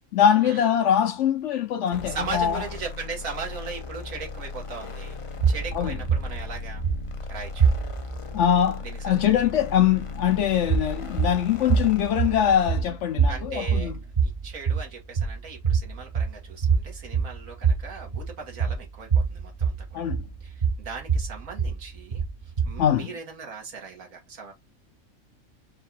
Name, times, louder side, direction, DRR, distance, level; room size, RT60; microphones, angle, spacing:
voice 1, 0.1-2.6 5.7-6.0 8.3-13.9 19.9-20.2 22.8-23.1, left 9 dB, 65° left, 0.8 m, -23 dB
sound 1, 1.9-13.0, left 4 dB, 50° left, 0.4 m, -37 dB
voice 2, 2.1-5.2 5.5-6.8 7.3-7.7 8.8-9.3 13.3-13.9 14.2-20.1 20.4-22.3 22.6-24.5, right 4 dB, 75° right, 1.7 m, -38 dB
sound 2, 5.4-8.2 10.6-23.0, right 6 dB, 40° right, 1.0 m, -26 dB
4.5 x 2.4 x 4.0 m
omnidirectional pair, 1.4 m